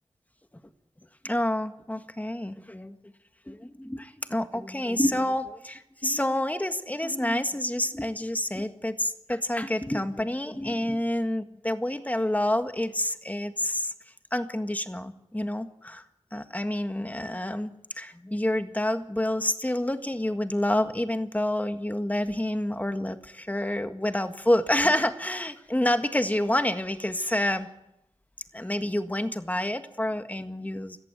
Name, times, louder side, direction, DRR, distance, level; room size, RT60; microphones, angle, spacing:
voice 1, 1.2-3.0 3.5-13.9 14.3-16.0 16.3-27.7 28.5-31.0, left 1 dB, 15° left, 8 dB, 1.8 m, -28 dB
25.0 x 14.5 x 9.5 m, 0.86 s
wide cardioid pair, 60°, 11 cm